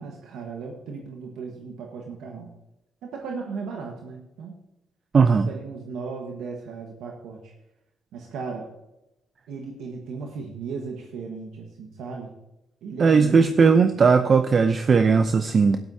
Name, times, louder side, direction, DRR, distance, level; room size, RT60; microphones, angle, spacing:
voice 1, 0.0-2.5 3.0-4.6 5.3-7.5 8.1-8.7 9.5-12.3 12.8-13.9 14.2-14.4, right 5 dB, 85° right, 1 dB, 1.4 m, -36 dB
voice 2, 5.1-5.5 13.0-15.8, right 5 dB, 45° right, 8 dB, 0.6 m, -18 dB
12.5 x 11.5 x 2.8 m, 0.92 s
cardioid pair, 90°, 0 cm